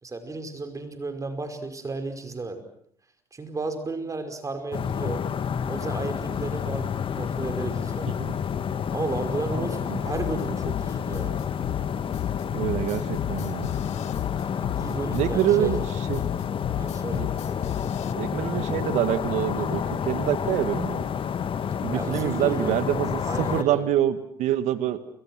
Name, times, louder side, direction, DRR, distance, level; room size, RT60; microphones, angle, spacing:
voice 1, 0.0-2.6 3.3-5.2 5.7-6.9 7.1-8.1 8.9-11.4 14.8-15.7 16.8-17.2 21.9-22.8 23.2-23.8, right 3 dB, 25° right, 7 dB, 5.2 m, -33 dB
sound 1, 4.7-23.6, left 7 dB, 45° left, 1.7 m, -29 dB
sound 2, 10.1-18.1, left 15 dB, 65° left, 1.2 m, -33 dB
voice 2, 12.5-13.7 15.1-16.2 17.1-17.3 18.2-21.0 21.8-25.0, right 12 dB, 65° right, 12 dB, 2.0 m, -26 dB
29.0 x 24.5 x 6.3 m, 0.68 s
hypercardioid pair, 65°, 13 cm